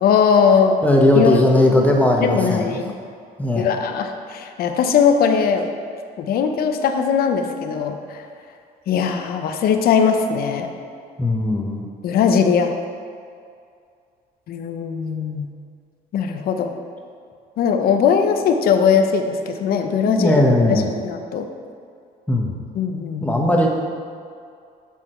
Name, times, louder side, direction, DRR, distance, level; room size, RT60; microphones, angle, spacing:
voice 1, 0.0-0.8 1.1-1.4 2.2-3.0 3.6-5.7 6.2-8.2 8.9-10.7 12.0-12.7 14.5-15.5 16.1-16.7 17.6-20.4 20.7-21.5 22.8-23.4, left 6 dB, 65° left, 6 dB, 0.7 m, -19 dB
voice 2, 0.8-2.8 3.4-3.7 11.2-11.9 20.0-20.9 22.3-22.5 23.2-23.7, left 1 dB, 10° left, 0 dB, 1.0 m, -17 dB
7.3 x 6.4 x 4.4 m, 2.3 s
cardioid pair, 110°, 17 cm